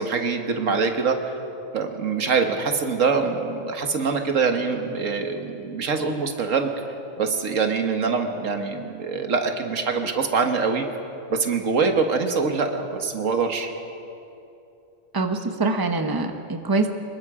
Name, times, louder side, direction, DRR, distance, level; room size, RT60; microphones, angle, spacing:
voice 1, 0.0-1.4 1.7-6.7 7.2-10.9 11.3-13.7, right 5 dB, 90° right, 5 dB, 1.8 m, -24 dB
voice 2, 15.1-16.9, right 3 dB, 20° right, 6 dB, 1.1 m, -24 dB
25.0 x 21.5 x 4.9 m, 2.8 s
omnidirectional pair, 1.3 m